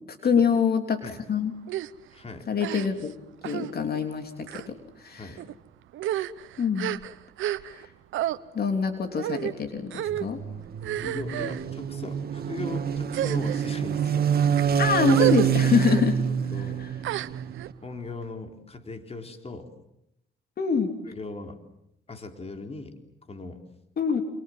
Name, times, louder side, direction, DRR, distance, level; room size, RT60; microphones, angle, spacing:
voice 1, 0.2-1.0 1.3-1.5 2.5-3.1 3.4-5.3 6.6-7.0 7.7-7.9 8.5-10.4 14.8-16.2 16.8-16.9 20.6-20.9 24.0-24.2, left 6 dB, 50° left, 6 dB, 3.4 m, -25 dB
sound 1, 1.7-1.9 2.6-3.1 3.4-3.7 4.4-4.7 5.4-5.5 5.9-7.9 8.1-8.4 9.2-9.5 9.9-10.3 10.8-11.6 12.3-12.6 13.1-13.8 14.4-14.6 15.1-15.5 15.8-16.0 17.0-17.7, right 13 dB, 85° right, 1.1 m, -30 dB
voice 2, 2.1-2.5 5.1-5.4 11.0-14.3 16.5-16.8 17.8-19.7 21.1-21.6 22.1-23.0 23.3-23.6, left 3 dB, 30° left, 6 dB, 3.8 m, -39 dB
sound 2, 10.1-17.7, right 8 dB, 50° right, 2.1 m, -26 dB
28.5 x 27.0 x 7.6 m, 0.79 s
cardioid pair, 90°, 20 cm